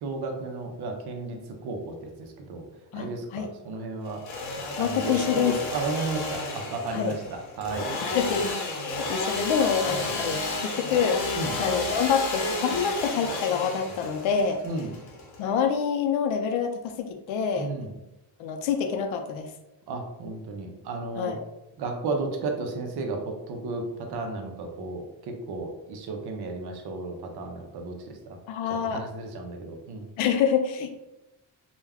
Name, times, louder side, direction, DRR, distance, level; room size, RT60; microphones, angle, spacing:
voice 1, 0.0-2.6 2.9-4.2 4.8-7.9 9.9-10.0 11.4-11.5 14.6-14.9 17.6-17.9 19.9-21.3 21.8-28.1 28.8-30.1, right 3 dB, 55° right, 3 dB, 0.6 m, -33 dB
voice 2, 2.9-3.5 4.8-5.6 6.9-7.2 8.0-8.5 8.8-14.6 15.4-17.7 18.4-19.5 21.2-21.5 28.5-29.0 30.2-30.9, left 7 dB, 90° left, 5 dB, 0.5 m, -26 dB
Engine / Sawing, 4.1-15.7, left 2 dB, 55° left, 0.8 m, -32 dB
2.3 x 2.2 x 3.3 m, 0.94 s
cardioid pair, 165°, 46 cm